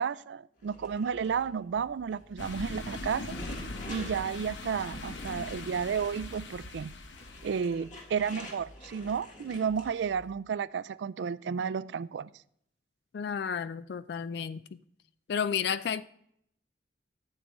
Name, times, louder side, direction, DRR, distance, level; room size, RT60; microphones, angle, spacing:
voice 1, 0.0-3.4 3.9-6.9 7.4-12.3, right 6 dB, 80° right, 0.3 m, -32 dB
sound 1, 0.6-10.3, left 1 dB, 45° left, 1.6 m, -49 dB
sound 2, 2.4-7.6, left 2 dB, 90° left, 0.9 m, -41 dB
voice 2, 13.1-14.6 15.3-16.0, left 7 dB, 65° left, 0.3 m, -31 dB
13.0 x 7.3 x 3.1 m
head